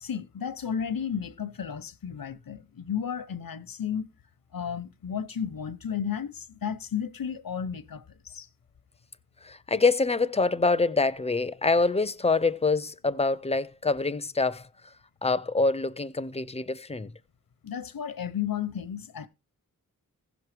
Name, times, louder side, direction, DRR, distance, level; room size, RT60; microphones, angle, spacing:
voice 1, 0.0-4.1 4.5-8.5 17.6-19.3, left 8 dB, 80° left, 0.8 m, -33 dB
voice 2, 9.4-14.7 15.2-17.1, left 3 dB, 20° left, 0.4 m, -25 dB
16.0 x 6.1 x 3.3 m
wide cardioid pair, 105°, 34 cm